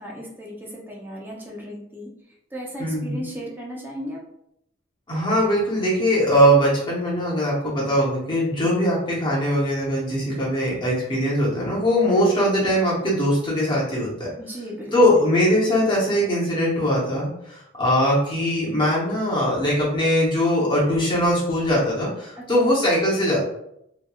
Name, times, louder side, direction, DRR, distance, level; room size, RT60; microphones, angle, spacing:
voice 1, 0.0-2.1 2.5-4.2 14.4-15.0 22.4-22.8, equal, 10° right, -3 dB, 0.5 m, -36 dB
voice 2, 2.8-3.2 5.1-14.3 14.9-23.4, equal, 25° left, -7 dB, 0.8 m, -21 dB
2.9 x 2.2 x 2.3 m, 0.76 s
head